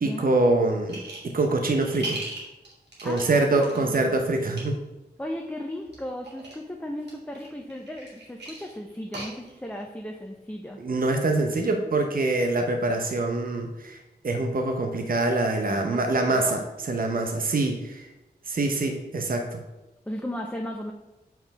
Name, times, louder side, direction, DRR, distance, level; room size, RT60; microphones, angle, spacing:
voice 1, 0.0-2.2 3.0-4.8 10.8-18.1 18.5-19.6, right 2 dB, 60° right, 4 dB, 0.8 m, -25 dB
sound 1, 0.9-1.4 1.7-3.8 4.4-4.6 5.8-6.6 7.0-9.8, right 2 dB, 90° right, 2.3 m, -38 dB
voice 2, 3.0-4.0 5.2-10.8 15.7-16.6 20.1-20.9, left 1 dB, 10° left, 1 dB, 0.7 m, -36 dB
5.9 x 4.6 x 5.3 m, 1.0 s
wide cardioid pair, 60°, 17 cm